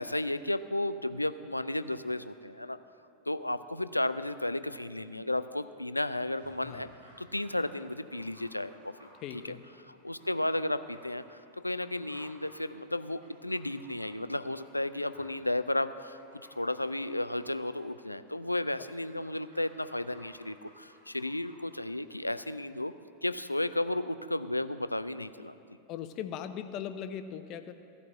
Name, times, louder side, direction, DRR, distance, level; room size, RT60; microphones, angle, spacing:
voice 1, 0.0-2.8 3.3-6.9 7.2-8.9 9.3-9.6 10.0-16.2 16.6-22.9 23.2-25.5, left 1 dB, 85° left, 13 dB, 0.3 m, -33 dB
Dog, 6.2-22.5 22.8-22.9, equal, 60° right, 3.1 m, -59 dB
voice 2, 9.2-9.6 25.9-27.7, left 9 dB, 40° left, 10 dB, 0.7 m, -39 dB
15.0 x 5.3 x 8.2 m, 2.6 s
figure-of-eight pair, 90°, 0 cm